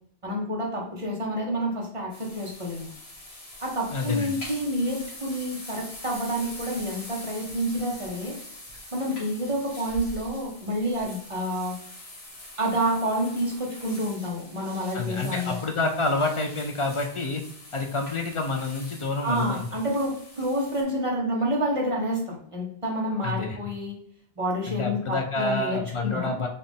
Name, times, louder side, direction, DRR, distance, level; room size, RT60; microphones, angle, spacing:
voice 1, 0.2-2.9 3.6-8.3 8.9-11.8 12.6-15.6 19.2-23.9 24.4-26.4, equal, 35° right, -2 dB, 0.9 m, -28 dB
sound 1, 2.1-20.8, left 1 dB, 85° left, 1.6 m, -43 dB
voice 2, 3.9-4.4 14.9-17.4 17.7-19.6 23.2-23.6 24.7-26.5, left 3 dB, 50° left, 3 dB, 0.4 m, -28 dB
4.1 x 2.4 x 3.5 m, 0.62 s
omnidirectional pair, 1.0 m